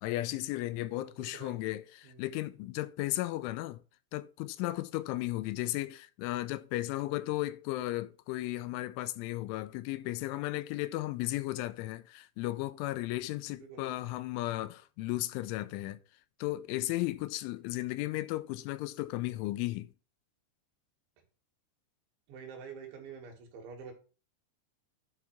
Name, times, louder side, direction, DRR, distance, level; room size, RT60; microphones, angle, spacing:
voice 1, 0.0-3.8 4.1-16.0 16.4-19.9, left 17 dB, 85° left, 3.0 m, -35 dB
voice 2, 1.0-1.7 2.0-2.3 13.5-13.9 22.3-23.9, right 6 dB, 70° right, 4.2 m, -48 dB
10.0 x 4.0 x 5.7 m
omnidirectional pair, 5.5 m